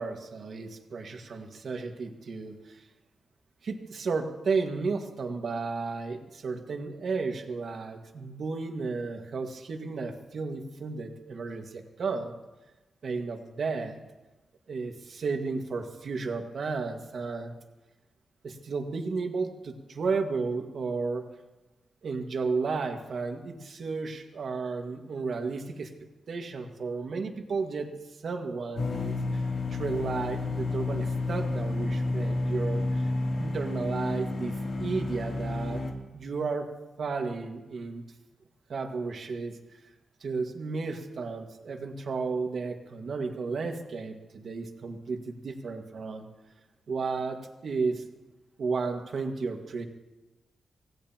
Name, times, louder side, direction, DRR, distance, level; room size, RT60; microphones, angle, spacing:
voice 1, 0.0-2.8 3.6-12.4 13.0-14.0 14.7-17.5 18.4-21.3 22.0-25.9 26.3-27.9 28.2-29.4 29.7-33.1 33.4-35.8 36.1-36.7 37.0-38.0 38.7-39.6 40.2-46.3 46.9-48.1 48.6-49.9, right 4 dB, 65° right, 4 dB, 1.7 m, -33 dB
sound 1, 28.8-35.9, left 2 dB, 70° left, 2.7 m, -30 dB
25.5 x 17.0 x 2.9 m, 1.1 s
cardioid pair, 95°, 0 cm